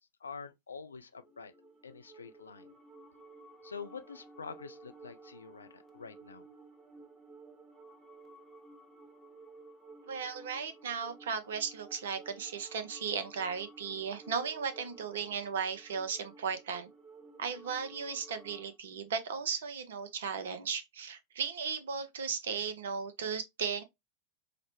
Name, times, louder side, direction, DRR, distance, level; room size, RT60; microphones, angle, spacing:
voice 1, 0.2-1.5 1.8-2.7 3.6-6.5, left 5 dB, 75° left, 0.4 m, -46 dB
sound 1, 1.1-18.7, right 3 dB, 5° right, 0.9 m, -55 dB
voice 2, 10.1-16.9 17.4-23.8, right 6 dB, 60° right, 0.5 m, -36 dB
4.8 x 2.1 x 2.9 m
figure-of-eight pair, 90°, 0 cm